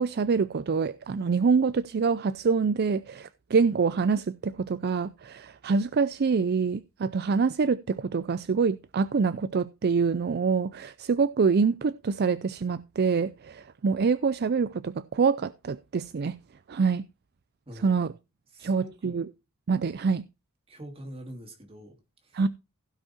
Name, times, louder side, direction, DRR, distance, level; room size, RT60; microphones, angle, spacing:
voice 1, 0.0-16.4 16.7-17.0 17.8-18.1 18.6-19.3 19.7-20.2 22.3-22.5, right 5 dB, 50° right, 0.4 m, -25 dB
voice 2, 17.7-18.0 18.5-19.3 20.7-22.4, equal, 25° right, 2.7 m, -45 dB
16.0 x 5.4 x 4.3 m
head